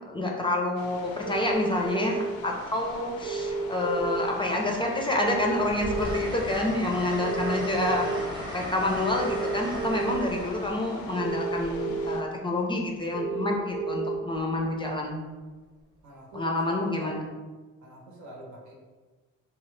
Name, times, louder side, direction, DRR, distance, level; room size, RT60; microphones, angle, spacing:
voice 1, 0.0-15.2 16.3-17.2, left 2 dB, 15° left, 0 dB, 0.4 m, -28 dB
Strong Waterfall Norway RF, 0.8-12.2, left 5 dB, 85° left, 0.5 m, -44 dB
sound 1, 1.3-2.3 3.2-4.2 5.2-6.2 7.2-8.2 9.2-10.2 11.2-12.2 13.1-14.2, right 4 dB, 60° right, 0.4 m, -31 dB
Train, 2.8-3.6 4.0-12.7 14.3-14.6, equal, 15° right, 0.8 m, -39 dB
voice 2, 16.0-17.3 17.8-18.7, right 1 dB, 75° right, -1 dB, 0.9 m, -44 dB
2.8 x 2.3 x 3.2 m, 1.3 s
cardioid pair, 90°, 30 cm